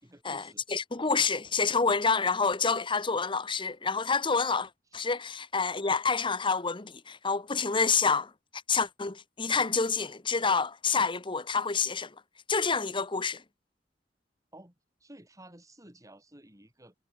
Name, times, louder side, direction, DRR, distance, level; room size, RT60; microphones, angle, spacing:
voice 1, 0.0-0.6 4.9-5.0 14.5-14.7 15.0-16.9, right 1 dB, 20° right, 4.4 m, -53 dB
voice 2, 0.7-8.3 8.7-12.1 12.5-13.4, left 5 dB, 30° left, 1.2 m, -28 dB
head